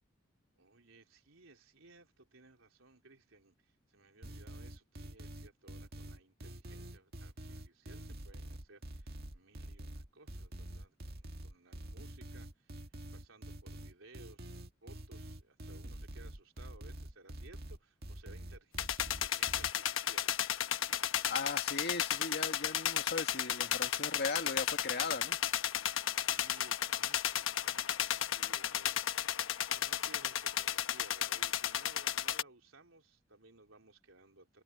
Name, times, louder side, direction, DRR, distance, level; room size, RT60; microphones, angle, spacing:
voice 1, 0.6-12.9 13.1-20.3 20.9-21.0 25.8-25.9 26.3-29.1 29.4-34.6, right 2 dB, 85° right, 3.9 m, -60 dB
sound 1, 4.2-19.7, right 1 dB, 50° right, 1.9 m, -46 dB
sound 2, 18.8-32.4, left 10 dB, 80° left, 1.1 m, -34 dB
voice 2, 21.3-25.4, left 4 dB, 55° left, 2.0 m, -38 dB
head